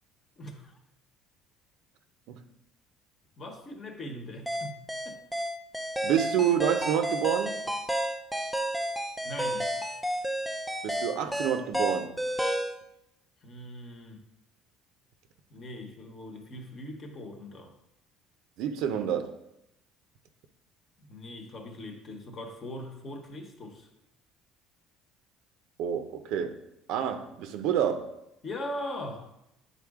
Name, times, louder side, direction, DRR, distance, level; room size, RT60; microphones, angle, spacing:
voice 1, 0.4-0.8 2.3-2.4 3.4-5.2 9.2-9.7 13.4-14.2 15.5-17.7 21.0-23.9 28.4-29.3, left 1 dB, 30° left, 4 dB, 1.1 m, -40 dB
sound 1, 4.5-12.8, equal, ahead, 0.5 m, -31 dB
voice 2, 6.0-7.6 10.8-12.1 18.6-19.3 25.8-26.6 26.9-28.1, right 9 dB, 70° right, 8 dB, 0.7 m, -28 dB
10.0 x 4.1 x 3.6 m, 0.85 s
cardioid pair, 145°, 0 cm